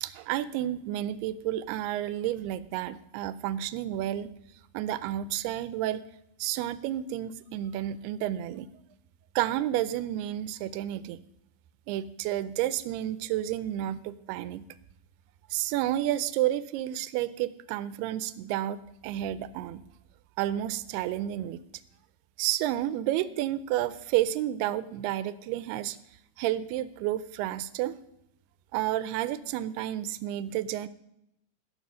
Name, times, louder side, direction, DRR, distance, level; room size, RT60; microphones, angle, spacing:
voice 1, 0.0-4.3 4.7-6.0 6.4-8.7 9.4-11.2 11.9-14.7 15.5-19.8 20.4-21.6 22.4-26.0 26.4-28.0 28.7-30.9, right 13 dB, 90° right, 16 dB, 2.6 m, -31 dB
15.5 x 6.0 x 6.2 m, 0.78 s
omnidirectional pair, 4.5 m